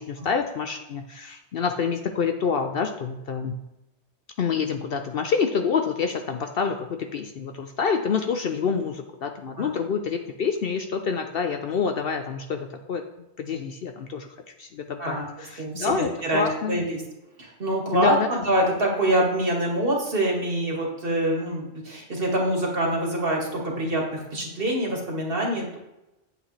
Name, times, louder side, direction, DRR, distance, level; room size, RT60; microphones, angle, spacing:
voice 1, 0.0-3.6 4.4-13.0 13.4-14.3 14.6-16.8 17.9-18.3, left 6 dB, 60° left, 6 dB, 0.7 m, -27 dB
voice 2, 15.0-15.9 16.2-17.0 17.4-25.8, right 1 dB, 50° right, -1 dB, 1.9 m, -25 dB
8.8 x 8.0 x 3.2 m, 0.93 s
omnidirectional pair, 1.2 m